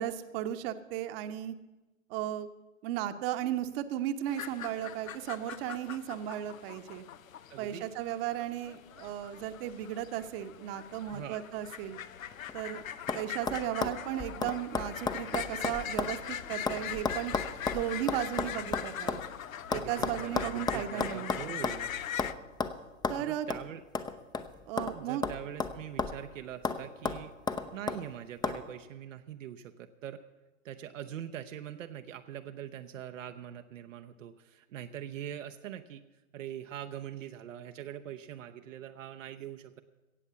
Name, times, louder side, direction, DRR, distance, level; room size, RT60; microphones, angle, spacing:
voice 1, 0.0-1.5 2.1-2.5 2.8-7.0 7.6-12.0 12.5-12.8 13.1-17.3 17.7-19.2 19.7-21.4 23.1-23.5 24.7-25.2, right 11 dB, 45° right, 10 dB, 1.0 m, -35 dB
sound 1, 4.3-22.3, left 9 dB, 80° left, 0.7 m, -42 dB
voice 2, 7.5-7.9 11.1-11.4 19.7-21.9 23.2-23.8 24.9-30.2 30.6-36.0 36.3-39.8, right 10 dB, 70° right, 7 dB, 0.8 m, -43 dB
sound 2, 12.3-12.7 13.1-13.2 13.5-16.2 16.4-19.2 19.7-21.8 22.2-22.3 22.6-22.7 23.0-23.2 23.5-23.6 23.9-25.0 25.2-26.3 26.6-26.8 27.1-28.0 28.4-28.6, left 5 dB, 10° left, 0.6 m, -33 dB
17.0 x 7.3 x 6.9 m, 1.1 s
hypercardioid pair, 105°, 40 cm